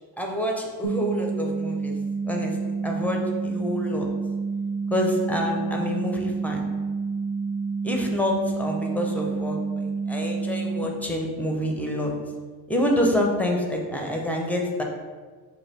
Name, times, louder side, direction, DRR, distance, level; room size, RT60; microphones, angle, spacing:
voice 1, 0.2-2.0 2.2-2.6 2.8-4.1 4.9-6.6 7.8-12.1 12.7-14.8, left 1 dB, 5° left, 0 dB, 0.6 m, -27 dB
sound 1, 0.8-10.8, right 4 dB, 60° right, 0.8 m, -29 dB
5.5 x 2.4 x 3.3 m, 1.5 s
cardioid pair, 90°, 46 cm